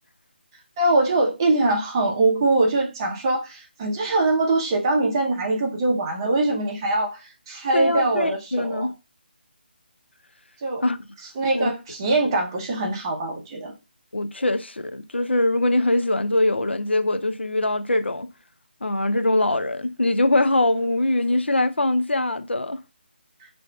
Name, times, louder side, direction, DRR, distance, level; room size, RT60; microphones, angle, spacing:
voice 1, 0.8-7.2 7.5-8.9 10.6-10.8 11.4-13.7, right 2 dB, 20° right, 0.6 m, -22 dB
voice 2, 7.7-8.9 10.8-11.0 11.6-11.7 14.1-18.3 18.8-22.8, left 2 dB, 90° left, 0.4 m, -22 dB
5.6 x 2.5 x 2.3 m
figure-of-eight pair, 155°, 6 cm